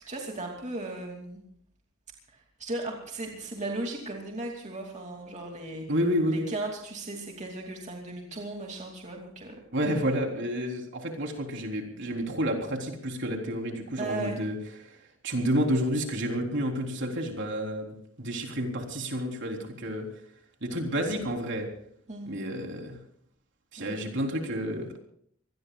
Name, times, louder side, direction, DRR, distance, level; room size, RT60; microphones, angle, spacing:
voice 1, 0.1-1.4 2.3-5.9 6.2-9.6 14.0-14.4 22.1-22.3 23.8-23.9, right 2 dB, 35° right, 1 dB, 2.7 m, -36 dB
voice 2, 5.9-6.4 9.7-14.6 14.8-15.0 15.2-20.1 20.6-21.7 22.3-23.0 23.7-25.0, equal, 60° right, 2 dB, 3.8 m, -30 dB
26.0 x 20.0 x 2.4 m, 0.64 s
head